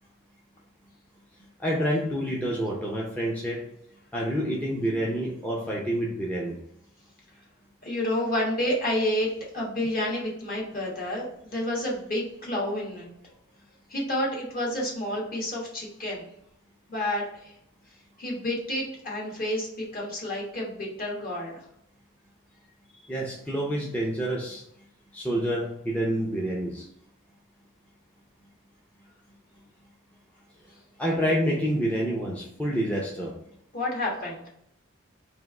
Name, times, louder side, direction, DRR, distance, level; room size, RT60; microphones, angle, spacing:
voice 1, 1.6-3.6 4.1-6.6 23.1-24.6 25.1-26.8 31.0-33.3, equal, 5° left, -4 dB, 0.6 m, -28 dB
voice 2, 7.8-13.1 13.9-16.3 16.9-17.5 18.2-21.6 33.7-34.5, left 1 dB, 45° left, -3 dB, 1.3 m, -30 dB
3.5 x 2.9 x 4.1 m, 0.73 s
head